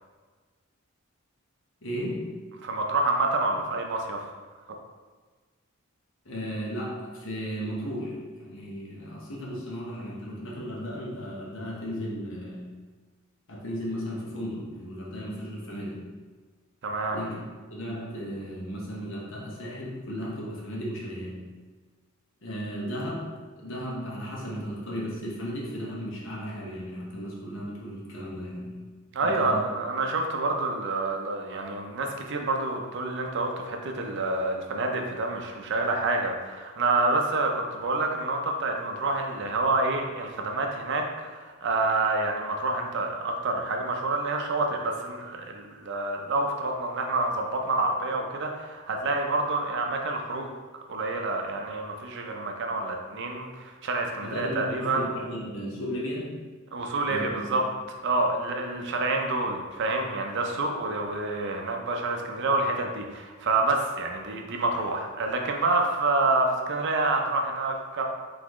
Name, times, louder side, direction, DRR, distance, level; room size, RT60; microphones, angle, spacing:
voice 1, 1.8-2.4 6.2-12.7 13.5-16.0 17.1-17.4 17.7-21.4 22.4-28.8 29.2-29.7 54.2-56.4 57.1-57.6, equal, 60° left, -4 dB, 1.0 m, -35 dB
voice 2, 2.6-4.3 16.8-17.2 29.1-50.5 50.9-55.1 56.7-57.6 58.0-68.0, right 2 dB, 55° right, 2 dB, 0.5 m, -28 dB
4.0 x 3.4 x 3.0 m, 1.4 s
head